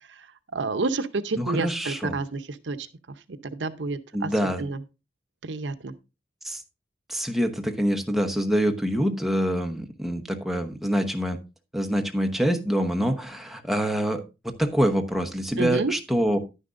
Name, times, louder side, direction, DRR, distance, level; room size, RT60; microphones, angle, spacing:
voice 1, 0.5-2.9 3.4-4.3 4.6-4.8 5.5-5.9 15.6-15.9, right 3 dB, 80° right, 0.7 m, -29 dB
voice 2, 1.4-2.2 4.1-4.6 6.4-6.6 7.1-11.4 11.7-16.4, equal, ahead, 0.9 m, -25 dB
11.0 x 9.9 x 2.5 m
head